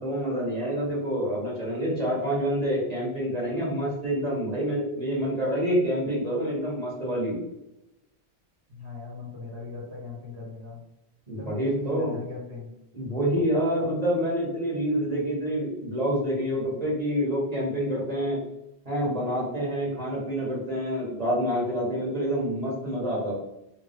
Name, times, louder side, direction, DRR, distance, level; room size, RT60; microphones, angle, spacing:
voice 1, 0.0-7.4 11.3-12.2 12.9-18.4 18.8-23.3, equal, 40° right, -5 dB, 1.4 m, -27 dB
voice 2, 8.7-10.8 11.4-12.7, left 3 dB, 85° right, -3 dB, 1.4 m, -39 dB
3.2 x 2.8 x 3.4 m, 0.89 s
omnidirectional pair, 1.1 m